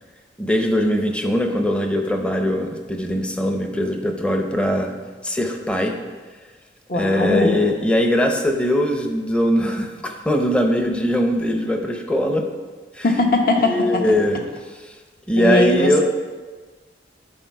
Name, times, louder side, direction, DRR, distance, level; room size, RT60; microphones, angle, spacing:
voice 1, 0.4-4.9 5.2-5.9 6.9-12.4 12.9-13.0 13.6-14.4 15.3-16.0, equal, 5° left, 3 dB, 0.6 m, -21 dB
voice 2, 6.9-7.5 13.0-14.0 15.4-15.9, left 2 dB, 55° left, 2 dB, 1.1 m, -19 dB
10.5 x 4.1 x 4.6 m, 1.4 s
head